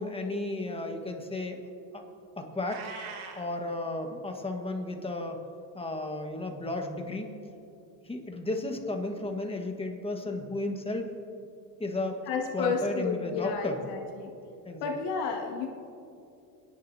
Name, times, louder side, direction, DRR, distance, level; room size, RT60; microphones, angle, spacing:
voice 1, 0.0-1.6 1.9-2.1 2.4-2.9 3.4-5.4 5.7-7.3 8.0-11.1 11.8-12.2 12.5-13.8 14.6-14.9, left 2 dB, 10° left, 3 dB, 1.4 m, -33 dB
Meow, 2.6-3.5, right 5 dB, 75° right, 1.9 m, -41 dB
voice 2, 12.3-14.3 14.8-15.7, left 5 dB, 80° left, 1 dB, 2.2 m, -31 dB
27.5 x 10.5 x 2.8 m, 2.6 s
supercardioid pair, 110°, 48 cm